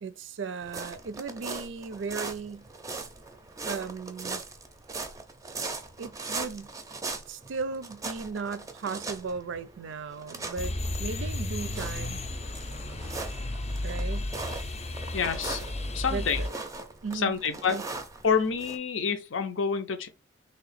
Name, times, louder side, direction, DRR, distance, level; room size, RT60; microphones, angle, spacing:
voice 1, 0.0-2.7 3.6-4.4 6.0-6.7 7.3-12.2 13.8-14.3 16.1-16.5 17.0-17.4 17.7-17.8, right 5 dB, 75° right, 0.4 m, -36 dB
sound 1, 0.6-18.8, right 3 dB, 15° right, 0.5 m, -40 dB
sound 2, 10.6-16.5, left 1 dB, 35° left, 0.5 m, -33 dB
voice 2, 15.1-15.6 15.9-16.4 17.1-17.8 18.2-20.1, left 6 dB, 85° left, 0.6 m, -27 dB
3.1 x 2.9 x 4.1 m
head